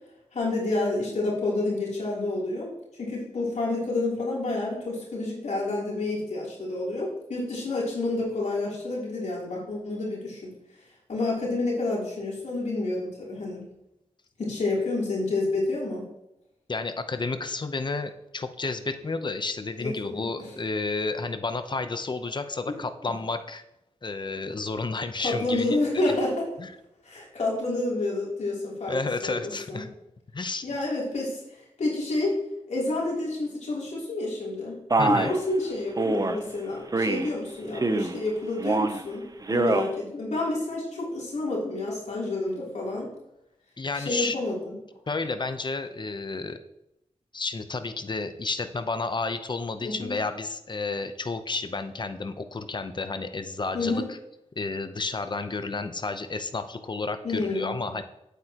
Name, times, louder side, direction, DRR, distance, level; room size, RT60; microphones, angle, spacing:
voice 1, 0.3-2.7 3.0-10.5 11.1-13.7 14.4-16.1 19.8-20.5 22.7-22.8 25.2-26.5 27.0-29.8 30.6-31.4 31.8-32.4 32.7-34.8 35.1-43.1 43.9-44.7 49.8-50.1 53.7-54.1 57.2-57.7, left 2 dB, 75° left, -4 dB, 3.2 m, -29 dB
voice 2, 16.7-23.6 24.0-25.8 26.6-26.7 28.9-29.9 30.3-30.7 35.0-35.3 43.8-44.4 45.1-46.6 47.3-54.2 54.6-58.0, left 3 dB, 40° left, 9 dB, 0.8 m, -31 dB
Male speech man speaking, 34.9-35.4 36.0-36.4 36.9-37.3 37.7-38.2 38.6-39.0 39.4-39.9, right 2 dB, 30° right, 0.7 m, -24 dB
8.7 x 8.0 x 3.0 m, 0.85 s
cardioid pair, 60°, 12 cm